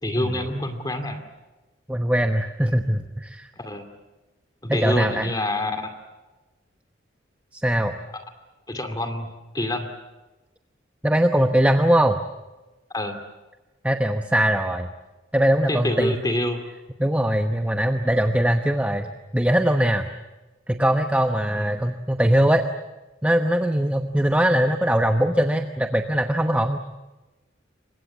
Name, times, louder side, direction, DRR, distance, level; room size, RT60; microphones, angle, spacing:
voice 1, 0.0-1.2 2.6-2.9 3.6-3.8 4.6-5.9 8.7-9.3 9.5-9.9 12.9-13.2 15.7-16.6 21.6-21.9, left 1 dB, 20° left, 7 dB, 2.4 m, -27 dB
voice 2, 1.9-3.5 4.7-5.3 7.5-8.0 11.0-12.2 13.8-14.9 15.3-16.2 17.0-20.1 20.7-22.6 23.2-26.8, right 1 dB, 5° right, 5 dB, 1.0 m, -21 dB
29.0 x 25.0 x 7.4 m, 1.1 s
head